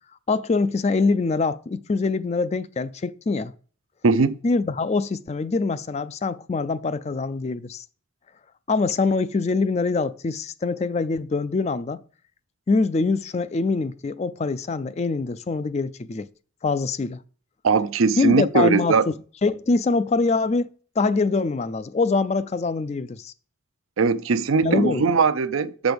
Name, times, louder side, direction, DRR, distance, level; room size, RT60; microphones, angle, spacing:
voice 1, 0.3-3.5 4.4-7.9 8.7-12.0 12.7-16.3 16.6-17.2 18.2-19.1 19.4-20.7 21.0-23.3 24.6-25.1, left 3 dB, 30° left, 0.3 m, -24 dB
voice 2, 4.0-4.4 17.6-19.0 24.0-25.9, right 4 dB, 80° right, 0.6 m, -20 dB
7.0 x 6.1 x 5.1 m
head